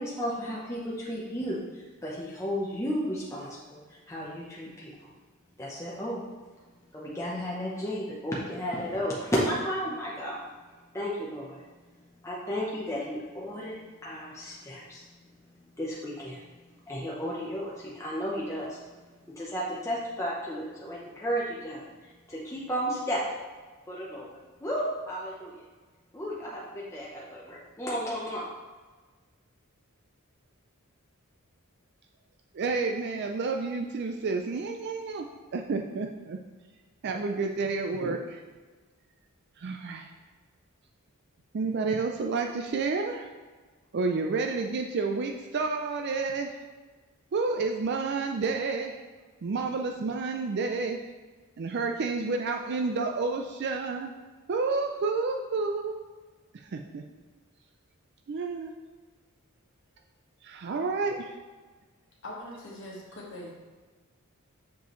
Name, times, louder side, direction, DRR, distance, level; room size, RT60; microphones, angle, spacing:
voice 1, 0.0-5.1 5.6-6.2 6.9-10.4 10.9-11.6 12.2-15.1 15.8-16.4 16.9-18.8 19.3-23.2 23.9-24.3 24.6-25.5 26.1-28.4, equal, 15° left, -5 dB, 0.7 m, -33 dB
voice 2, 32.5-35.3 35.5-36.4 37.0-38.4 39.6-40.1 41.5-43.3 43.9-46.6 47.3-49.0 49.4-51.0 51.6-54.1 54.5-56.0 56.7-57.0 58.3-58.7 60.4-61.3, right 4 dB, 50° right, 3 dB, 0.4 m, -30 dB
voice 3, 62.2-63.5, left 1 dB, 60° left, -5 dB, 1.4 m, -41 dB
6.8 x 5.2 x 3.1 m, 1.4 s
head